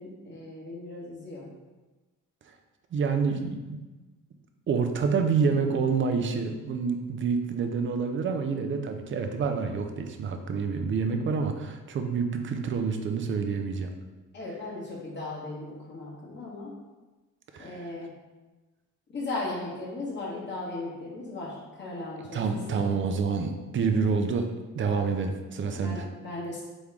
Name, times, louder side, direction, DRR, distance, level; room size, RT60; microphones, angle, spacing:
voice 1, 0.0-1.5 14.3-16.7 17.6-18.1 19.1-22.8 25.7-26.6, left 2 dB, 35° left, -5 dB, 1.4 m, -37 dB
voice 2, 2.9-3.8 4.7-13.9 17.5-17.7 22.3-24.5 24.7-26.1, right 5 dB, 40° right, 6 dB, 0.5 m, -27 dB
3.6 x 3.1 x 3.4 m, 1.2 s
cardioid pair, 90°, 30 cm